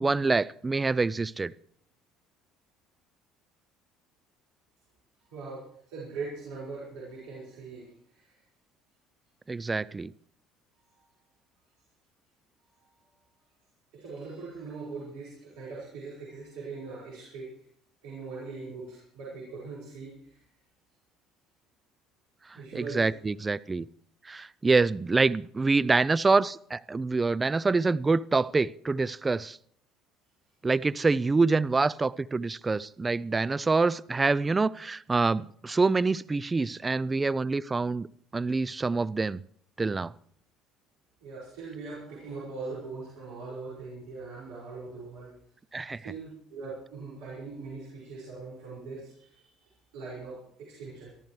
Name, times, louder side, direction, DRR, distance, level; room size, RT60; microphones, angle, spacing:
voice 1, 0.0-1.5 9.5-10.1 22.7-23.9 24.3-29.6 30.6-38.1 38.3-39.4 39.8-40.1 45.7-46.1, right 3 dB, 20° right, 17 dB, 0.5 m, -26 dB
voice 2, 5.3-8.3 10.9-11.1 12.8-12.9 13.9-17.5 18.0-20.4 22.6-23.1 33.5-33.7 34.7-34.8 41.2-45.3 46.0-51.1, right 4 dB, 70° right, -5 dB, 5.8 m, -41 dB
23.0 x 14.0 x 3.2 m, 0.63 s
hypercardioid pair, 60°, 0 cm